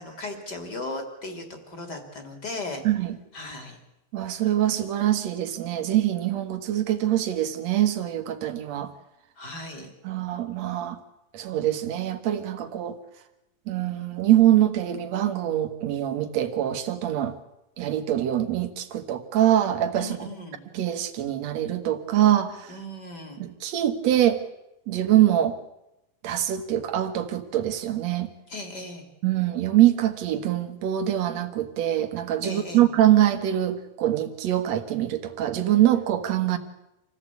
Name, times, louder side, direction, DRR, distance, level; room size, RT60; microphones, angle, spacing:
voice 1, 0.0-2.8 3.3-3.8 9.4-9.9 20.0-20.6 22.7-23.4 28.5-29.1 32.4-32.8, left 2 dB, 30° left, 5 dB, 3.1 m, -37 dB
voice 2, 2.8-3.2 4.1-8.9 10.0-11.0 11.3-13.0 13.7-17.3 17.8-20.3 20.7-22.7 23.4-24.4 24.9-25.6 26.2-28.3 29.2-36.6, right 12 dB, 55° right, 7 dB, 2.5 m, -24 dB
26.5 x 16.0 x 8.4 m, 0.90 s
omnidirectional pair, 4.1 m